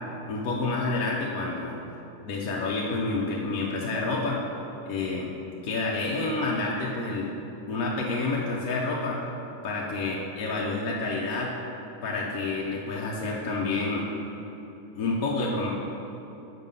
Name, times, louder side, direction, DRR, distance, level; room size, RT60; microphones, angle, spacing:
voice 1, 0.3-1.8 2.2-4.4 4.8-5.3 5.6-7.3 7.7-9.2 9.6-11.5 12.0-14.1 14.9-15.7, left 3 dB, 70° left, -3 dB, 1.1 m, -29 dB
6.4 x 5.3 x 5.4 m, 2.9 s
omnidirectional pair, 1.7 m